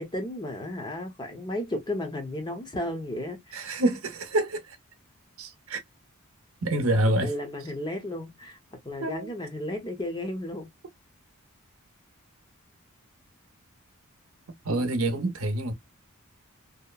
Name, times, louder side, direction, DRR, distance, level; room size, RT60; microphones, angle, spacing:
voice 1, 0.0-3.7 7.2-8.6 8.8-10.7, left 1 dB, 20° left, 0.7 m, -34 dB
voice 2, 3.5-4.8 5.4-5.8 6.6-7.3 9.0-9.3 14.6-15.7, right 1 dB, 65° right, 0.7 m, -27 dB
2.8 x 2.0 x 2.2 m
head